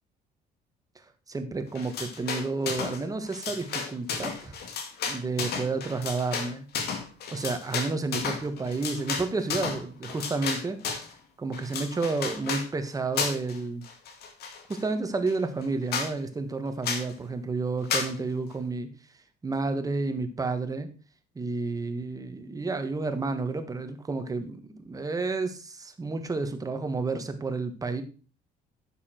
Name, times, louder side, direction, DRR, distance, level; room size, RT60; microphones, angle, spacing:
voice 1, 1.3-4.6 5.0-6.6 7.3-10.8 11.4-13.8 14.7-18.9 19.4-20.9 21.3-28.0, right 3 dB, 20° right, 8 dB, 1.5 m, -30 dB
sound 1, 1.7-3.0 3.3-11.1 11.5-12.7 13.2-13.6 13.8-14.8 15.3-15.4 15.6-15.7 15.9-16.1 16.8-17.1 17.9-18.1, left 5 dB, 70° left, 2.2 m, -32 dB
9.9 x 7.0 x 4.4 m, 0.36 s
cardioid pair, 110°, 17 cm